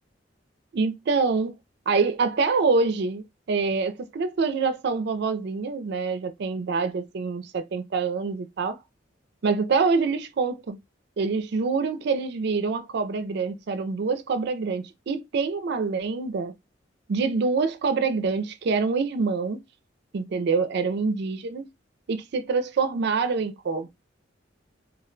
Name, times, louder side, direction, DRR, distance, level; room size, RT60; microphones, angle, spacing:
voice 1, 0.7-1.6 1.9-8.8 9.4-10.8 11.2-16.5 17.1-19.6 20.1-21.7 22.1-23.9, right 4 dB, 60° right, 0.4 m, -25 dB
2.3 x 2.2 x 3.7 m
head